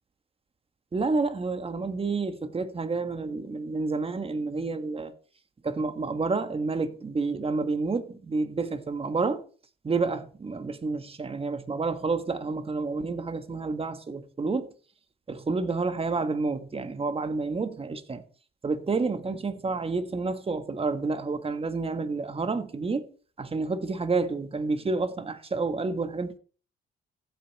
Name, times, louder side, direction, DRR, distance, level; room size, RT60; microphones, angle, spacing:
voice 1, 0.9-5.1 5.6-9.4 9.8-14.7 15.3-18.2 18.6-23.1 23.4-26.4, right 3 dB, 30° right, 1.6 m, -29 dB
15.0 x 8.3 x 4.3 m
cardioid pair, 90°, 20 cm